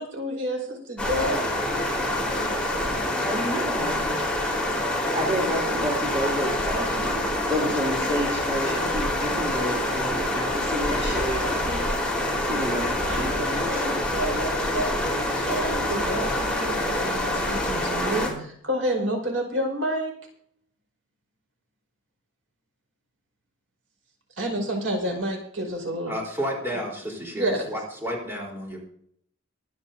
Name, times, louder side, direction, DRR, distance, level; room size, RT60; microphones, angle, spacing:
voice 1, 0.0-1.5 13.0-20.1 24.4-26.1 27.3-27.6, equal, 70° right, 1 dB, 5.4 m, -29 dB
sound 1, 1.0-18.3, left 1 dB, 5° left, 4.3 m, -26 dB
voice 2, 2.8-4.2 5.1-7.2 7.5-12.0 12.5-14.1, equal, 30° right, -4 dB, 3.1 m, -30 dB
voice 3, 26.1-28.8, equal, 10° right, -2 dB, 4.1 m, -31 dB
24.5 x 10.0 x 2.8 m, 0.65 s
head